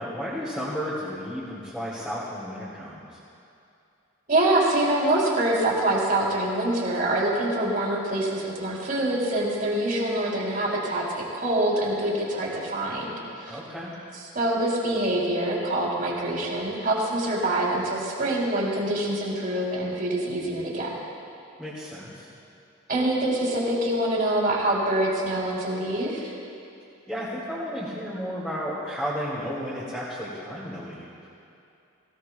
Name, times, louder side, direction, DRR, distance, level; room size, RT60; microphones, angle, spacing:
voice 1, 0.0-3.2 13.5-13.9 21.6-22.3 27.1-31.1, equal, 5° left, -10 dB, 2.4 m, -33 dB
voice 2, 4.3-13.6 14.3-20.9 22.9-26.3, right 1 dB, 40° right, -4 dB, 3.3 m, -25 dB
23.0 x 16.5 x 2.3 m, 2.6 s
head